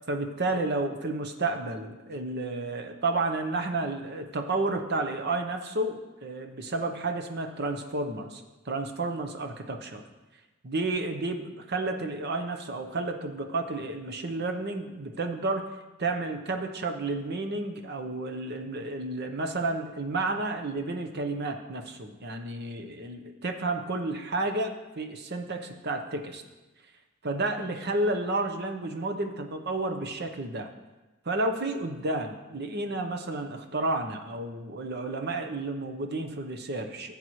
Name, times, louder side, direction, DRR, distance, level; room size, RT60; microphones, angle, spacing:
voice 1, 0.1-10.0 10.6-15.7 16.0-26.4 27.2-30.7 31.3-37.2, right 2 dB, 50° right, 5 dB, 0.9 m, -31 dB
15.0 x 7.3 x 3.2 m, 1.1 s
head